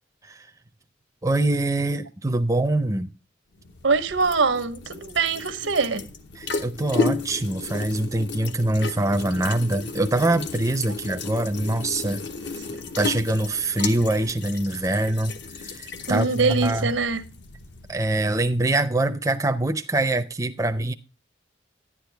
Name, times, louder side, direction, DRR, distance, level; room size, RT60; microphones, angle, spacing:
voice 1, 1.2-3.1 6.4-12.6 13.0-16.9 17.9-20.9, right 2 dB, 15° right, 0.5 m, -24 dB
sound 1, 3.6-18.6, left 4 dB, 65° left, 1.0 m, -34 dB
voice 2, 3.8-6.0 16.1-17.2, right 4 dB, 85° right, 1.1 m, -23 dB
11.0 x 9.8 x 3.4 m
head